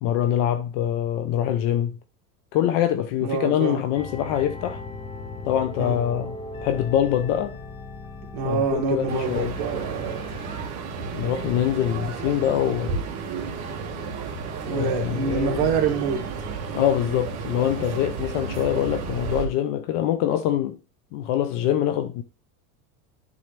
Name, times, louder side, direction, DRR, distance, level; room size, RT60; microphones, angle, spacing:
voice 1, 0.0-2.0 2.5-4.8 5.4-6.3 6.6-7.6 8.4-9.6 11.1-13.0 14.7-15.7 16.7-20.8 21.1-22.2, left 11 dB, 55° left, 0.8 m, -24 dB
voice 2, 3.2-3.8 5.8-6.0 8.3-10.5 14.5-16.3, right 6 dB, 50° right, 2.4 m, -26 dB
sound 1, 4.0-10.7, left 2 dB, 10° left, 0.4 m, -38 dB
sound 2, 9.1-19.5, right 5 dB, 35° right, 1.9 m, -32 dB
11.0 x 4.0 x 3.3 m
supercardioid pair, 150°, 48 cm